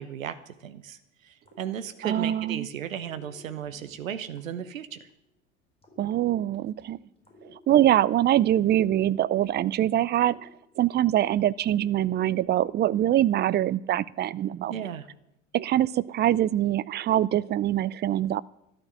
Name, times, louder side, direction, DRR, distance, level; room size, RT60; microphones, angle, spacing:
voice 1, 0.0-5.0 14.6-15.1, right 9 dB, 80° right, 11 dB, 1.0 m, -35 dB
sound 1, 1.4-2.4 2.9-5.3 5.8-8.2 8.7-11.1 11.6-13.1, left 3 dB, 15° left, 4.5 m, -55 dB
voice 2, 2.0-2.7 6.0-7.0 7.7-10.5 10.8-14.7 15.5-18.4, right 12 dB, 25° right, 19 dB, 0.5 m, -24 dB
13.0 x 12.5 x 7.5 m, 0.81 s
figure-of-eight pair, 70°, 40 cm